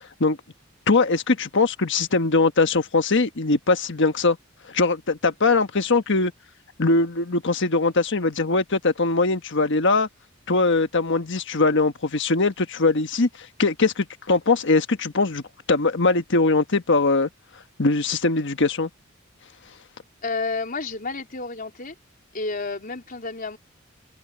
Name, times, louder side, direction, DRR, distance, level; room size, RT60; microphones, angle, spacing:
voice 1, 0.9-4.4 4.7-6.3 6.8-10.1 10.5-13.3 13.6-15.4 15.7-17.3 17.8-18.9, left 3 dB, 65° left, 1.4 m, -21 dB
voice 2, 20.2-21.9 22.3-23.6, left 3 dB, 45° left, 3.9 m, -30 dB
head